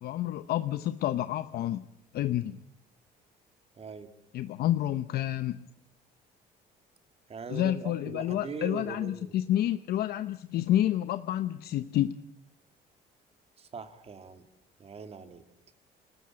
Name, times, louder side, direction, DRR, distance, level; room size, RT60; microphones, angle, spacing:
voice 1, 0.0-1.8 2.1-2.6 4.3-5.6 7.5-12.2, left 12 dB, 70° left, 12 dB, 0.8 m, -29 dB
voice 2, 3.8-4.1 7.3-9.3 13.6-14.4 14.8-15.4, right 5 dB, 35° right, 8 dB, 2.3 m, -41 dB
28.5 x 14.0 x 8.7 m, 0.78 s
cardioid pair, 110°, 17 cm